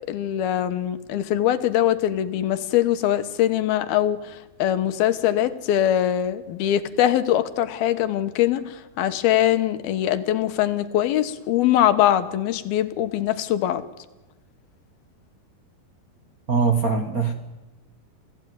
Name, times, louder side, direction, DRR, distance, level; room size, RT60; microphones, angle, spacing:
voice 1, 0.1-13.8, left 12 dB, 75° left, 11 dB, 3.0 m, -22 dB
voice 2, 16.5-17.3, right 5 dB, 85° right, 6 dB, 0.7 m, -21 dB
28.0 x 16.0 x 9.5 m, 1.1 s
omnidirectional pair, 4.4 m